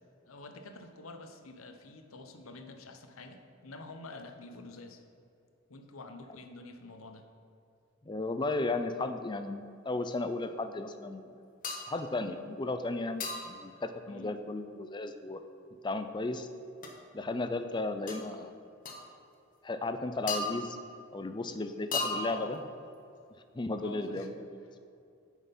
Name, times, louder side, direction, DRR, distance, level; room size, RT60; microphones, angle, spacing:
voice 1, 0.2-5.0 5.7-7.2 14.1-14.3 22.1-22.7 23.8-24.3, left 2 dB, 90° left, 7 dB, 0.9 m, -47 dB
voice 2, 8.0-11.3 11.9-15.4 15.8-16.5 17.1-18.5 19.6-20.8 21.1-22.6 23.5-24.6, left 2 dB, 20° left, 9 dB, 0.4 m, -34 dB
sound 1, 11.6-12.0 13.2-13.6 16.8-16.9 18.1-18.2 18.9-19.0 20.3-21.0 21.9-22.6, left 3 dB, 40° left, 1.2 m, -35 dB
9.3 x 6.3 x 5.3 m, 2.6 s
head